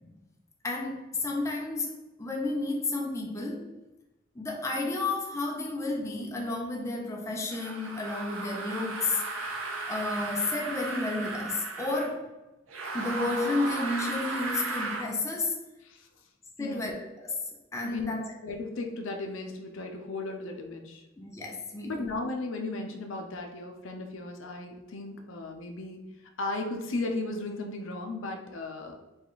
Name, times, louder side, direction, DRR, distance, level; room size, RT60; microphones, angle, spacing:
voice 1, 0.6-1.9 2.2-3.7 4.3-9.5 9.9-12.3 12.9-15.6 16.6-17.4 17.7-18.3 21.2-22.1, left 2 dB, 15° left, 0 dB, 0.6 m, -32 dB
sound 1, 7.5-12.2 12.7-15.1, right 3 dB, 75° right, 0.7 m, -35 dB
voice 2, 16.6-16.9 17.8-18.1 18.4-21.0 21.8-26.1 26.4-28.9, left 2 dB, 65° left, 3 dB, 0.6 m, -35 dB
5.1 x 2.4 x 3.9 m, 1.0 s
head